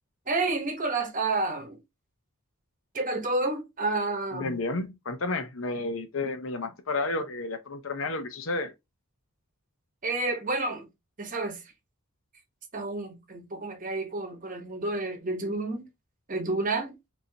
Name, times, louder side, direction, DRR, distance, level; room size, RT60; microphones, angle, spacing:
voice 1, 0.3-1.8 2.9-4.6 10.0-10.9 11.2-11.6 12.7-15.9 16.3-16.9, right 2 dB, 40° right, 1.0 m, -30 dB
voice 2, 4.3-8.7, left 2 dB, 70° left, 0.8 m, -31 dB
4.8 x 2.8 x 2.7 m
head